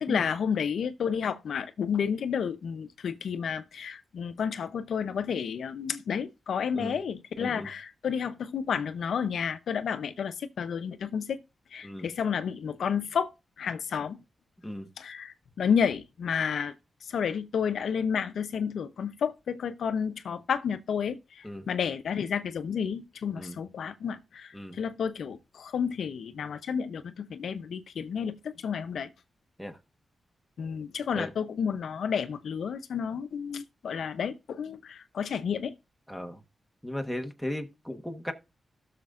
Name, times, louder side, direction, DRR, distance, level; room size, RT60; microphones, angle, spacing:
voice 1, 0.0-11.4 11.7-13.3 13.6-14.2 15.0-16.7 17.1-28.3 28.6-29.1 30.6-35.7, left 7 dB, 85° left, 0.7 m, -31 dB
voice 2, 36.1-36.4 36.8-38.3, left 1 dB, ahead, 1.2 m, -36 dB
16.5 x 6.7 x 2.5 m
wide cardioid pair, 130°, 0 cm